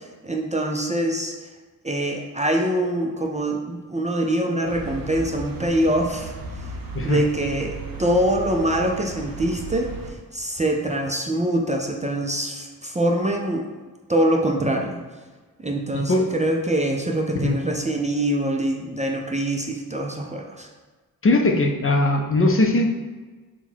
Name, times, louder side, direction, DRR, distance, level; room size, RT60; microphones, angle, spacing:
voice 1, 0.0-1.3 1.8-6.3 7.0-9.9 10.3-13.7 14.1-15.0 15.6-20.7, right 1 dB, 20° right, 1 dB, 0.4 m, -24 dB
sound 1, 4.7-10.1, right 4 dB, 60° right, 0.7 m, -35 dB
voice 2, 15.9-16.3 17.3-17.6 21.2-22.9, left 2 dB, 35° left, 2 dB, 0.5 m, -20 dB
3.8 x 2.3 x 4.4 m, 1.3 s
cardioid pair, 50°, 39 cm